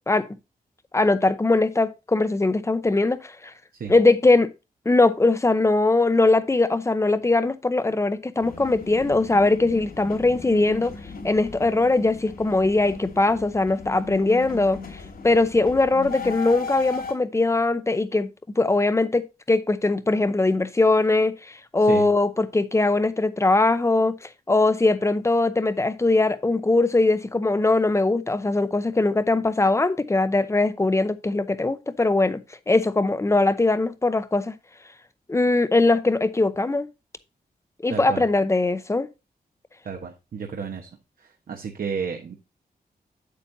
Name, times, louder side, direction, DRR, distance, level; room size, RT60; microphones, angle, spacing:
voice 1, 0.9-3.5 3.9-4.5 4.9-10.9 11.2-18.3 18.6-32.4 32.7-34.5 35.3-36.9 37.8-39.1, left 2 dB, 20° left, 0.7 m, -21 dB
sound 1, 8.4-17.1, left 4 dB, 75° left, 3.5 m, -37 dB
voice 2, 37.9-38.2 39.8-40.9 41.2-42.4, right 6 dB, 65° right, 1.2 m, -32 dB
8.7 x 8.5 x 2.7 m
wide cardioid pair, 160°, 16 cm